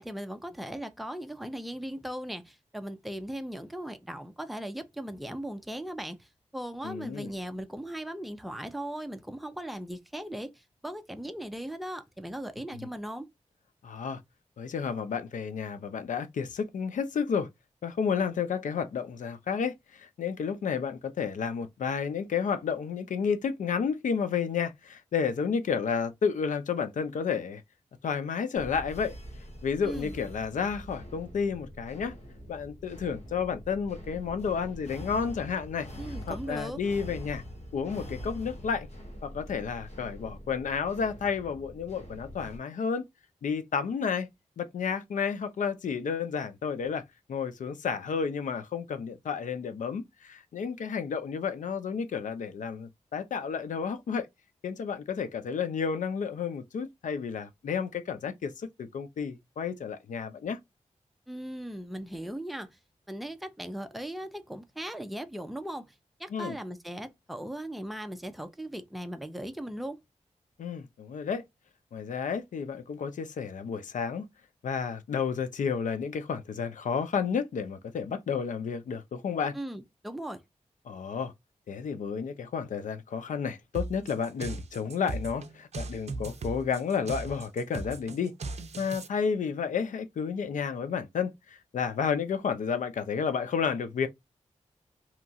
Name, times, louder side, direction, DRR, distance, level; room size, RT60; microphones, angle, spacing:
voice 1, 0.0-13.3 29.8-30.1 36.0-36.8 61.3-62.8 63.1-65.9 66.2-70.0 79.5-80.4, right 1 dB, ahead, 0.5 m, -38 dB
voice 2, 6.8-7.3 12.7-12.9 13.8-14.2 14.6-17.5 17.8-27.6 28.0-29.2 29.6-32.1 32.5-35.9 36.3-37.4 37.7-38.9 39.2-43.0 43.4-44.3 44.6-54.3 54.6-60.6 66.3-66.5 70.6-71.4 71.9-74.3 74.6-79.6 80.9-81.3 81.7-88.3 88.8-94.1, left 6 dB, 90° left, 0.4 m, -31 dB
sound 1, 28.5-42.6, equal, 60° left, 1.0 m, -44 dB
sound 2, 83.7-89.1, right 3 dB, 60° right, 0.5 m, -37 dB
2.9 x 2.3 x 2.6 m
wide cardioid pair, 75°, 13 cm